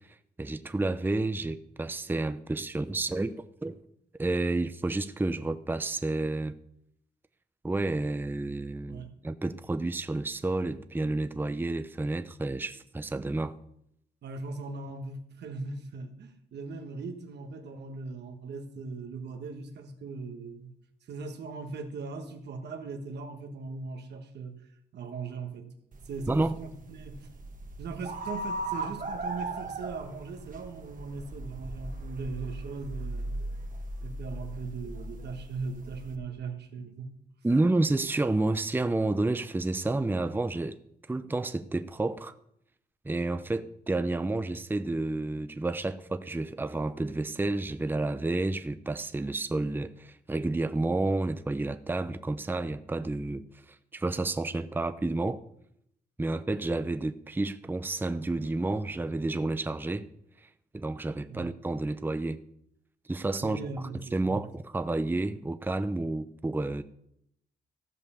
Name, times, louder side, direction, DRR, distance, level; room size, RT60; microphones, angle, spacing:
voice 1, 0.4-3.8 4.2-6.5 7.6-13.6 26.3-26.5 37.4-40.8 41.1-42.3 43.0-53.4 53.9-55.4 56.2-60.1 60.7-62.4 63.1-63.6 64.1-66.8, right 2 dB, 10° right, 0.6 m, -30 dB
voice 2, 8.8-9.1 14.2-20.7 21.1-24.6 24.9-25.7 26.0-27.3 27.8-33.4 34.0-37.1 61.3-61.5 63.4-64.5, right 4 dB, 80° right, 1.4 m, -39 dB
sound 1, 25.9-36.2, right 2 dB, 50° right, 1.4 m, -38 dB
15.0 x 5.3 x 6.9 m
cardioid pair, 75°, 17 cm